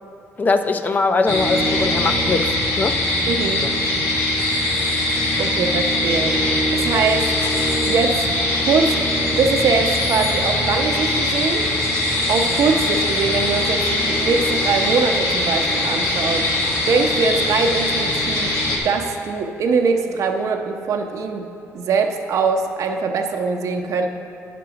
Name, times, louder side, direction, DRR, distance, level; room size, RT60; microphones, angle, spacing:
voice 1, 0.4-3.2 3.6-3.7, left 3 dB, 30° left, 8 dB, 0.4 m, -21 dB
sound 1, 1.3-18.8, left 1 dB, 80° left, 1.7 m, -21 dB
voice 2, 3.3-3.6 5.4-6.4 6.7-7.3 7.8-8.3 8.6-9.0 9.3-11.7 12.3-16.5 16.9-18.5 18.8-21.5 21.7-24.1, right 4 dB, 70° right, 3 dB, 0.7 m, -22 dB
10.0 x 6.0 x 4.8 m, 2.6 s
cardioid pair, 125°, 6 cm